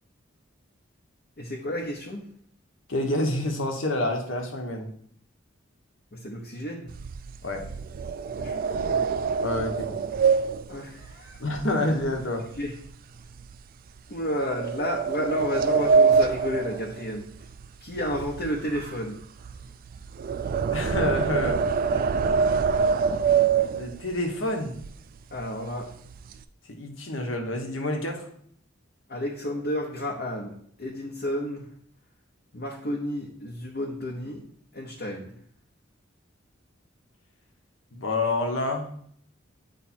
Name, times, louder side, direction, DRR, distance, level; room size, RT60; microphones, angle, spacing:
voice 1, 1.4-2.2 6.1-6.9 8.4-9.0 10.7-11.4 12.6-12.7 14.1-17.3 17.8-19.2 22.2-22.9 25.3-25.9 29.1-31.7 32.5-34.4 34.7-35.3, equal, 50° left, -2 dB, 0.9 m, -32 dB
voice 2, 2.9-4.9 7.4-7.6 9.4-10.0 11.4-12.5 20.7-21.6 23.7-24.7 26.7-28.3 37.9-38.9, left 1 dB, 70° left, 3 dB, 1.1 m, -28 dB
sound 1, 6.9-12.3 12.6-12.9 13.4-13.5 14.3-17.7 17.9-24.2 24.8-24.9 25.2-25.4 25.8-26.4, right 5 dB, 45° right, 0.3 m, -25 dB
8.3 x 3.3 x 4.2 m, 0.63 s
head